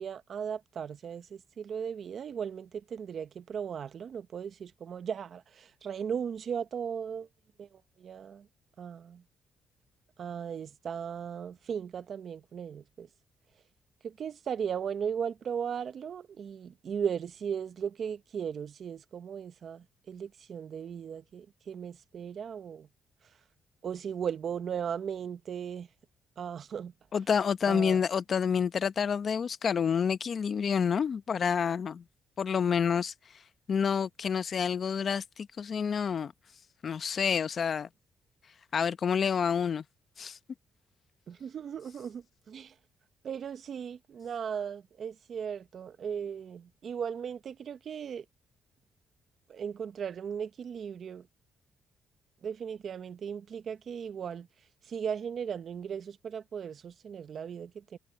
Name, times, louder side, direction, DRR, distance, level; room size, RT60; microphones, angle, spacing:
voice 1, 0.0-7.3 7.6-8.5 8.8-9.2 10.2-13.1 14.0-22.9 23.8-25.9 26.4-26.9 27.7-28.0 41.3-42.7 43.2-48.2 49.5-51.3 52.4-54.5 54.9-58.0, right 7 dB, 55° right, 0.9 m, -37 dB
voice 2, 27.1-32.0 32.4-33.1 33.7-36.3 36.8-37.9 38.7-39.8 40.2-40.4, left 7 dB, 50° left, 0.8 m, -28 dB
cardioid pair, 90°, 0 cm